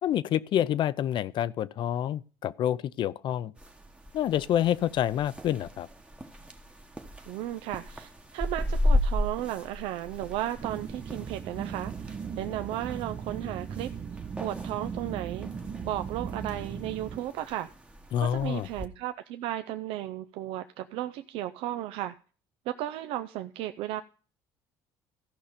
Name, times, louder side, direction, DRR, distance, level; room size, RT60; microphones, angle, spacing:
voice 1, 0.0-3.5 4.1-5.9 18.1-18.7, left 11 dB, 55° left, 0.6 m, -28 dB
sound 1, 3.6-18.9, left 1 dB, 10° right, 1.1 m, -35 dB
voice 2, 7.3-13.9 14.4-15.5 15.8-17.7 18.2-22.1 22.7-24.0, right 13 dB, 75° right, 0.6 m, -34 dB
sound 2, 10.6-17.2, right 6 dB, 35° right, 0.7 m, -38 dB
14.5 x 5.6 x 5.1 m
supercardioid pair, 95°, 10 cm